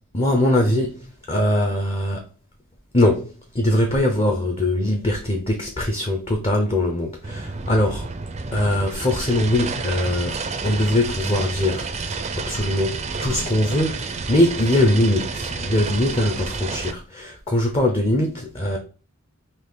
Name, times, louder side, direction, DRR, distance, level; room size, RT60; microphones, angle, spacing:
voice 1, 0.1-1.0 1.3-2.2 2.9-8.1 8.5-10.4 10.6-11.9 12.3-18.8, left 1 dB, 25° left, 0.6 m, -21 dB
sound 1, 7.2-16.9, right 4 dB, 30° right, 0.4 m, -30 dB
4.2 x 2.9 x 3.6 m
head